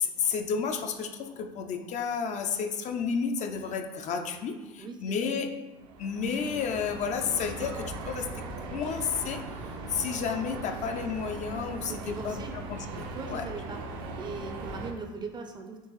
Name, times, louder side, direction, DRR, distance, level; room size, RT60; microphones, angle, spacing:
voice 1, 0.0-5.5 6.0-8.4 8.7-9.4 9.9-12.4 12.7-13.4, left 6 dB, 40° left, 5 dB, 0.4 m, -31 dB
voice 2, 4.8-5.3 11.8-12.5 13.1-13.8 14.2-15.8, right 4 dB, 25° right, 4 dB, 0.5 m, -40 dB
sound 1, 5.7-14.9, right 3 dB, 70° right, 0.6 m, -39 dB
4.5 x 3.0 x 3.0 m, 1.1 s
supercardioid pair, 90°, 18 cm